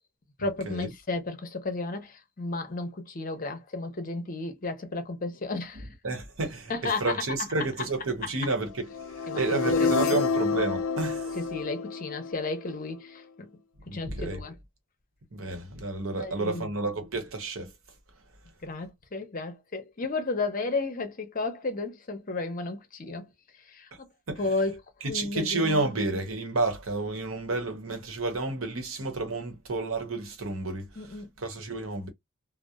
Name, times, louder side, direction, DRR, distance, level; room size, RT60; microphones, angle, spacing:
voice 1, 0.4-5.9 6.7-7.1 9.3-10.2 11.3-13.2 13.9-14.5 16.2-16.7 18.6-23.3 23.7-23.9 24.4-24.8 25.1-25.8 31.0-31.3, left 3 dB, 40° left, 0.7 m, -33 dB
voice 2, 5.7-11.4 13.9-14.4 15.3-17.7 24.3-24.5 25.0-31.0 31.4-32.1, right 2 dB, 80° right, 0.9 m, -31 dB
sound 1, 8.9-12.9, left 5 dB, 70° left, 0.3 m, -28 dB
2.8 x 2.0 x 2.3 m
head